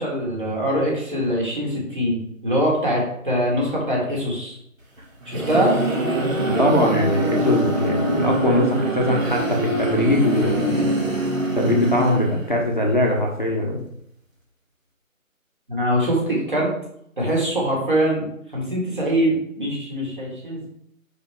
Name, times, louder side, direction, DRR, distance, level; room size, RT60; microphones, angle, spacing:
voice 1, 0.0-4.6 5.3-5.7 15.7-16.7 17.2-18.3 18.5-20.7, equal, 35° right, -3 dB, 2.1 m, -23 dB
sound 1, 5.0-12.7, right 1 dB, 70° right, 2.0 m, -24 dB
voice 2, 6.4-11.0 11.5-13.8, left 1 dB, 35° left, -1 dB, 0.8 m, -21 dB
5.1 x 4.4 x 4.4 m, 0.73 s
figure-of-eight pair, 170°, 42 cm